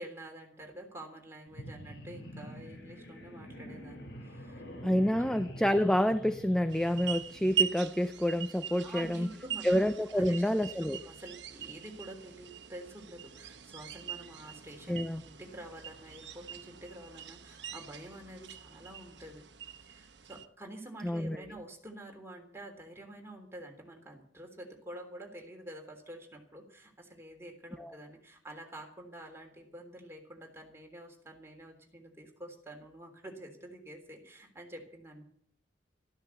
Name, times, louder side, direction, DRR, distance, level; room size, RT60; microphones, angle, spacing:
voice 1, 0.0-4.6 5.2-5.3 8.8-9.8 10.1-10.5 11.0-19.4 19.8-35.2, right 1 dB, 15° right, 2 dB, 3.5 m, -48 dB
sound 1, 1.5-7.7, equal, 90° left, 4.9 m, -46 dB
voice 2, 4.8-9.3 9.6-11.0 14.9-15.2 21.0-21.4 27.8-28.0, equal, 5° left, 10 dB, 0.5 m, -28 dB
sound 2, 6.7-20.5, right 9 dB, 65° right, 1.1 m, -41 dB
13.5 x 12.5 x 7.1 m, 0.63 s
head